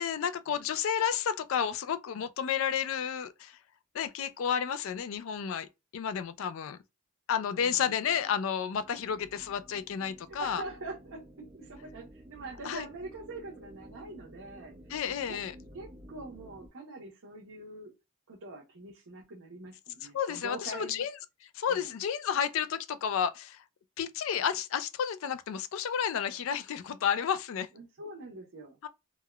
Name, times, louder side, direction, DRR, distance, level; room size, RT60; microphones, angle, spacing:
voice 1, 0.0-3.6 3.9-5.7 5.9-6.8 7.3-10.6 12.6-12.9 14.9-15.5 20.1-21.1 21.5-23.6 24.0-27.7 28.8-28.9, left 8 dB, 65° left, 0.3 m, -31 dB
voice 2, 7.5-8.3 10.3-14.7 15.3-15.4 15.7-17.9 18.3-21.0 21.7-21.9 27.7-28.8, right 2 dB, 75° right, 0.8 m, -44 dB
sound 1, 8.7-16.7, equal, 15° right, 0.3 m, -52 dB
3.4 x 2.2 x 2.2 m
head